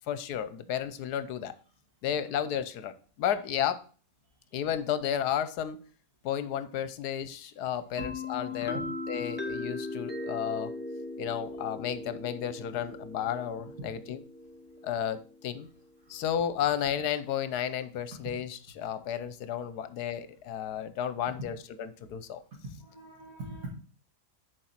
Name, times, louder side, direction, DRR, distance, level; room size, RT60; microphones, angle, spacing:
voice 1, 0.1-1.5 2.0-3.8 4.5-5.8 6.2-10.7 11.2-14.2 14.8-15.7 16.1-22.4, left 9 dB, 75° left, 12 dB, 1.2 m, -32 dB
sound 1, 8.0-15.6, left 2 dB, 10° left, 0.5 m, -39 dB
voice 2, 22.6-23.7, right 2 dB, 60° right, -3 dB, 2.1 m, -42 dB
6.8 x 5.0 x 5.8 m, 0.40 s
omnidirectional pair, 1.7 m